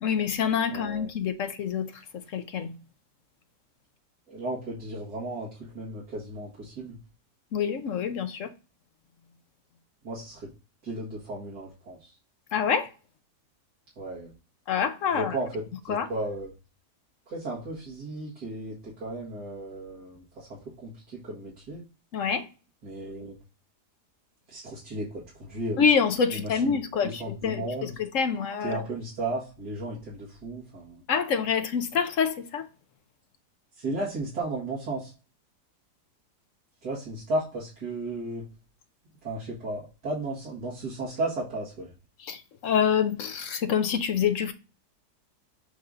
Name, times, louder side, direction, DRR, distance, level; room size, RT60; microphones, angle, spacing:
voice 1, 0.0-2.7 7.5-8.5 12.5-12.9 14.7-15.4 15.9-16.1 22.1-22.5 25.8-28.8 31.1-32.7 42.2-44.5, left 7 dB, 60° left, 0.9 m, -26 dB
voice 2, 0.7-1.1 4.3-7.0 10.0-10.5 10.8-12.1 14.0-14.3 15.1-16.5 17.3-21.8 22.8-23.3 24.5-25.8 26.3-26.5 27.0-27.9 28.6-31.0 33.8-35.1 36.8-38.5 39.2-41.9, right 2 dB, 75° right, 2.4 m, -34 dB
7.9 x 2.7 x 4.8 m
omnidirectional pair, 1.8 m